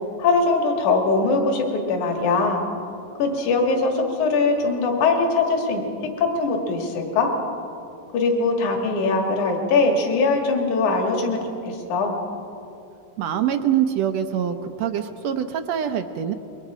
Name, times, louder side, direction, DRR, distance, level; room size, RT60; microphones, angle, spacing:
voice 1, 0.2-2.6 3.2-5.8 6.2-7.3 8.1-11.4 11.7-12.2, left 3 dB, 65° left, 2 dB, 3.5 m, -21 dB
voice 2, 13.2-16.3, right 9 dB, 75° right, 8 dB, 1.6 m, -24 dB
27.5 x 23.0 x 5.0 m, 2.7 s
omnidirectional pair, 3.8 m